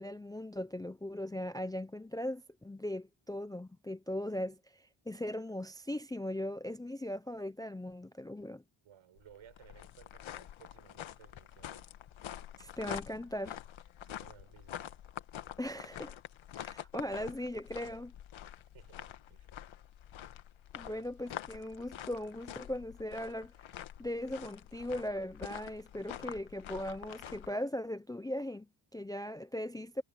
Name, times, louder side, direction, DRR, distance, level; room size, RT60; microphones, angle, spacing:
voice 1, 0.0-8.6 12.6-13.6 15.6-16.2 16.5-18.1 20.7-23.5 24.0-30.0, left 1 dB, 10° left, 0.4 m, -39 dB
voice 2, 8.8-11.9 14.0-14.8 16.5-16.6 18.7-19.7 20.8-21.1, right 10 dB, 80° right, 7.2 m, -59 dB
sound 1, 9.2-27.5, left 11 dB, 75° left, 1.4 m, -47 dB
wide cardioid pair, 155°, 47 cm